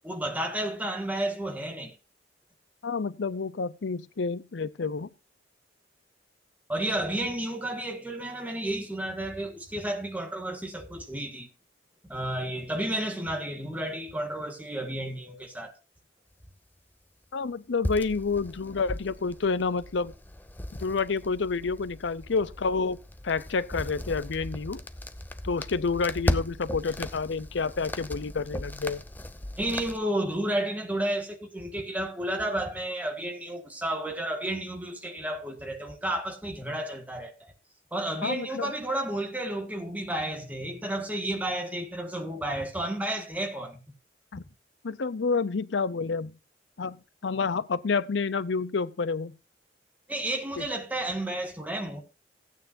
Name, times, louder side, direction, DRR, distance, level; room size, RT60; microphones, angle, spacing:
voice 1, 0.0-2.0 6.7-11.5 12.1-15.7 29.6-37.3 37.9-43.8 50.1-52.0, right 1 dB, 10° right, 1.7 m, -32 dB
voice 2, 2.8-5.1 17.3-20.1 20.8-23.0 23.2-24.8 25.4-29.0 38.2-38.7 44.3-44.4 44.8-46.3 46.8-49.4 50.6-50.7, left 4 dB, 80° left, 0.6 m, -29 dB
sound 1, 17.8-30.0, left 1 dB, 10° left, 0.5 m, -36 dB
16.0 x 9.0 x 2.6 m
head